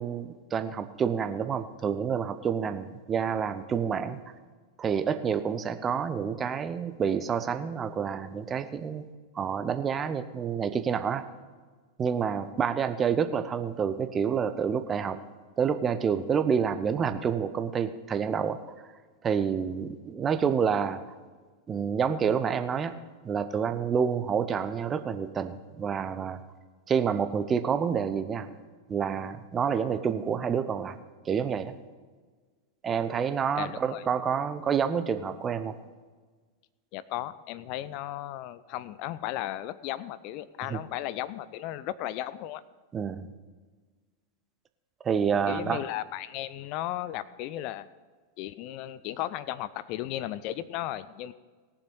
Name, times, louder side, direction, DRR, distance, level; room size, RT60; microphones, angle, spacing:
voice 1, 0.0-4.2 4.8-9.0 9.3-11.2 12.0-15.2 15.6-18.6 19.2-21.0 21.7-22.9 23.2-26.4 26.9-28.5 28.9-31.0 31.2-31.7 32.8-35.7 40.7-40.8 42.9-43.3 45.0-45.8, right 7 dB, 20° right, 10 dB, 0.8 m, -28 dB
voice 2, 33.6-34.0 36.9-42.6 45.5-47.9 48.4-51.3, left 14 dB, 45° left, 16 dB, 0.4 m, -35 dB
18.0 x 7.2 x 5.4 m, 1.4 s
figure-of-eight pair, 90°, 0 cm